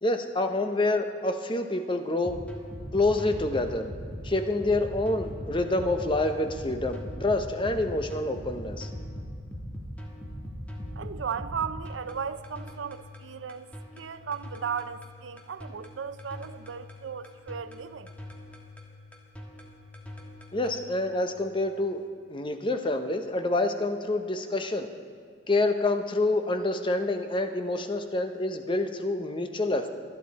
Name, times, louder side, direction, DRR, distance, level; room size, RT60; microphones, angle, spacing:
voice 1, 0.0-2.4 2.9-3.9 4.2-8.9 20.5-24.9 25.5-29.9, left 2 dB, 25° left, 0.8 m, -27 dB
sound 1, 2.2-20.8, equal, 10° left, 1.5 m, -41 dB
voice 2, 11.0-13.7 14.0-18.1, right 6 dB, 90° right, 0.6 m, -36 dB
24.5 x 9.3 x 4.2 m
head